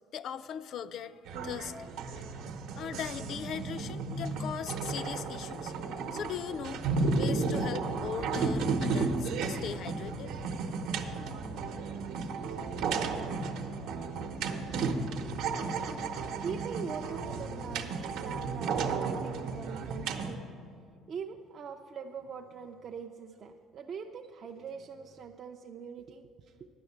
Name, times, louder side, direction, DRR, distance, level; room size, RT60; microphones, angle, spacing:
voice 1, 0.1-1.9 2.8-5.7 6.1-6.9 7.1-10.3, left 8 dB, 45° left, 14 dB, 0.4 m, -39 dB
sound 1, 1.3-20.3, right 4 dB, 70° right, 0.9 m, -33 dB
voice 2, 15.9-20.5 21.1-26.7, right 6 dB, 35° right, 3 dB, 0.4 m, -42 dB
10.0 x 6.5 x 8.4 m, 2.3 s
cardioid pair, 160°, 0 cm